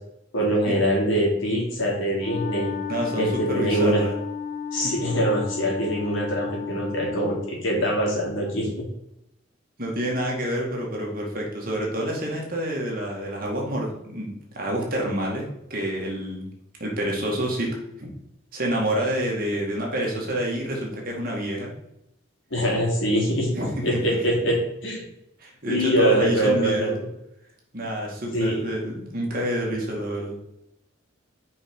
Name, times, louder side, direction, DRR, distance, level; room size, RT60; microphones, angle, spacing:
voice 1, 0.3-2.7 3.2-4.0 4.7-8.7 22.5-23.5 23.8-25.0 25.7-26.9 28.3-28.6, right 1 dB, 70° left, -3 dB, 3.0 m, -23 dB
Wind instrument woodwind instrument, 2.1-7.5, left 6 dB, 35° left, 0.4 m, -33 dB
voice 2, 2.9-4.1 4.8-4.9 9.8-16.5 16.8-18.1 18.5-21.7 23.5-23.8 25.4-27.0 27.7-30.3, equal, 45° right, -1 dB, 2.1 m, -28 dB
5.7 x 5.2 x 5.5 m, 0.83 s
head